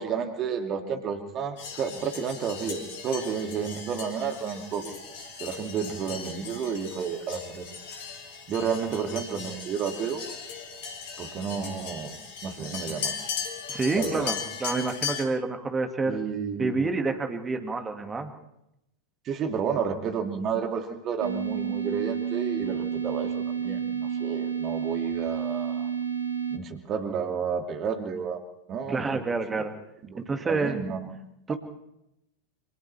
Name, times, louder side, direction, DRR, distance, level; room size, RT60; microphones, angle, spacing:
voice 1, 0.0-5.0 5.4-7.7 8.5-10.2 11.2-12.1 12.4-13.2 13.9-14.3 16.1-16.8 19.2-25.9 26.5-28.4 28.7-29.2 30.0-31.1 31.5-31.6, right 6 dB, 30° right, 5 dB, 2.5 m, -31 dB
sound 1, 1.6-15.2, left 6 dB, 50° left, 5.1 m, -37 dB
voice 2, 13.7-16.2 16.6-18.3 28.9-29.7 30.2-30.8 31.5-31.6, right 3 dB, 15° right, 6 dB, 2.1 m, -28 dB
sound 2, 21.2-26.6, right 7 dB, 80° right, 1.6 m, -30 dB
29.0 x 26.5 x 3.4 m, 0.84 s
figure-of-eight pair, 90°, 0 cm